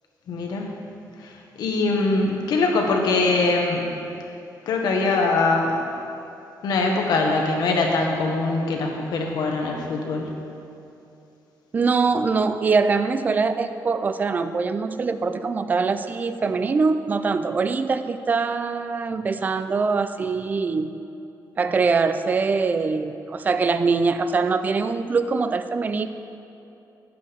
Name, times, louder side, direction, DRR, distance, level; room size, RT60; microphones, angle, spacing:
voice 1, 0.3-0.7 1.6-3.9 4.7-5.8 6.6-10.3, left 3 dB, 70° left, 1 dB, 1.3 m, -22 dB
voice 2, 11.7-20.9 21.6-26.1, right 4 dB, 25° right, 10 dB, 0.3 m, -23 dB
11.5 x 8.4 x 3.5 m, 2.7 s
wide cardioid pair, 180°, 7 cm